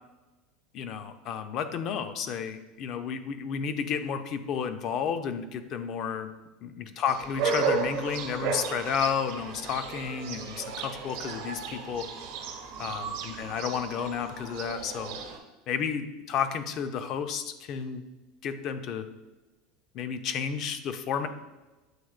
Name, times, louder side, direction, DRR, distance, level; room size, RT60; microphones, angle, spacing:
voice 1, 0.7-6.3 6.6-12.1 12.8-15.1 15.7-18.0 18.4-19.1 19.9-21.3, left 7 dB, 50° left, 9 dB, 0.4 m, -32 dB
sound 1, 7.1-15.4, right 5 dB, 75° right, 0.7 m, -34 dB
7.6 x 2.9 x 2.4 m, 1.1 s
hypercardioid pair, 95°, 0 cm